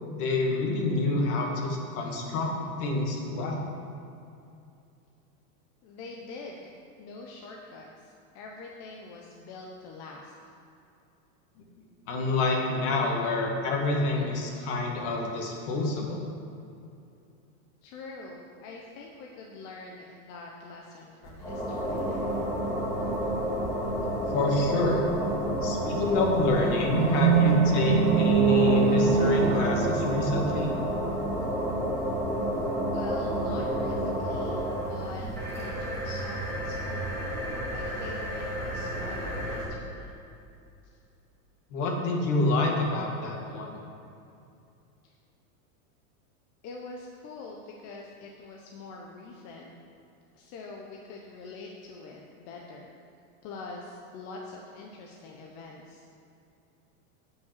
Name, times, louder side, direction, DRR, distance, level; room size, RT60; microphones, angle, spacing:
voice 1, 0.1-3.7 12.1-16.2 24.3-25.1 25.6-30.8 41.7-43.8, left 2 dB, 55° left, 0 dB, 1.9 m, -27 dB
voice 2, 5.8-6.7 7.0-10.3 17.8-22.1 32.9-35.3 35.5-37.2 37.7-40.1 46.6-49.7 50.3-52.9 53.4-56.0, left 3 dB, 35° left, -1 dB, 0.8 m, -44 dB
sound 1, 21.2-39.6, equal, 5° left, 1.9 m, -30 dB
sound 2, 26.9-31.0, right 6 dB, 80° right, 0.6 m, -24 dB
9.4 x 5.8 x 6.6 m, 2.7 s
supercardioid pair, 150°, 44 cm